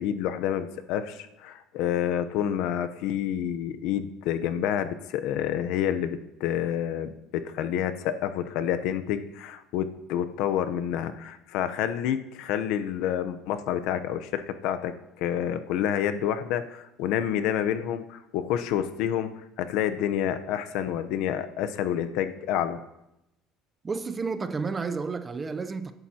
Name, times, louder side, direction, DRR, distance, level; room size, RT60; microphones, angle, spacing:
voice 1, 0.0-7.1 7.4-19.3 19.6-22.8, left 10 dB, 75° left, 0.8 m, -28 dB
voice 2, 23.8-25.9, right 4 dB, 20° right, 0.7 m, -31 dB
22.5 x 11.0 x 2.9 m
cardioid pair, 125°, 0 cm